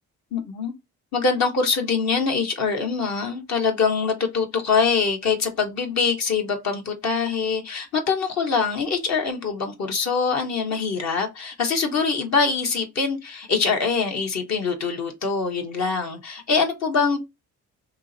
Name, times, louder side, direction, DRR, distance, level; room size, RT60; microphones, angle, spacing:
voice 1, 0.3-0.7 1.1-17.2, left 5 dB, 60° left, 1.2 m, -24 dB
3.6 x 2.9 x 4.0 m
cardioid pair, 90°, 30 cm